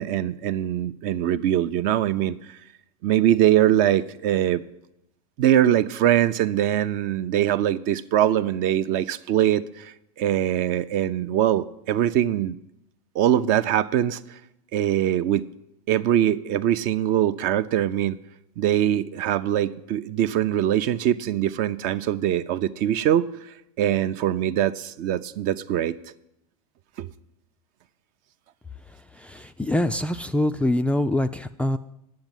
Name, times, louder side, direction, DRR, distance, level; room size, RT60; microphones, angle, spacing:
voice 1, 0.0-2.6 3.0-4.6 5.4-12.6 13.1-14.4 14.7-15.4 15.9-18.2 18.6-26.0 27.0-27.1, right 11 dB, 45° right, 13 dB, 0.6 m, -22 dB
voice 2, 29.2-31.8, left 1 dB, 5° left, 8 dB, 0.3 m, -24 dB
9.6 x 7.4 x 9.1 m, 0.83 s
hypercardioid pair, 100°, 19 cm